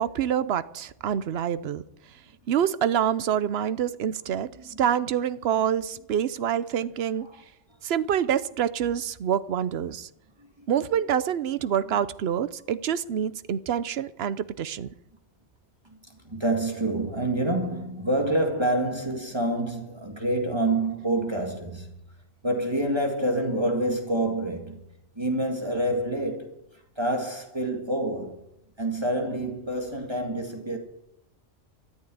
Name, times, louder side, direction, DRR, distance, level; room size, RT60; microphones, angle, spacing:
voice 1, 0.0-1.8 2.5-7.3 7.8-10.1 10.7-14.9, right 9 dB, 65° right, 0.9 m, -26 dB
voice 2, 4.3-4.8 7.2-7.4 7.7-7.8 10.4-10.8 11.9-12.0 15.8-21.9 22.4-24.9 25.2-28.4 28.8-30.8, right 1 dB, 20° right, 2.0 m, -28 dB
13.5 x 9.3 x 9.3 m
omnidirectional pair, 1.2 m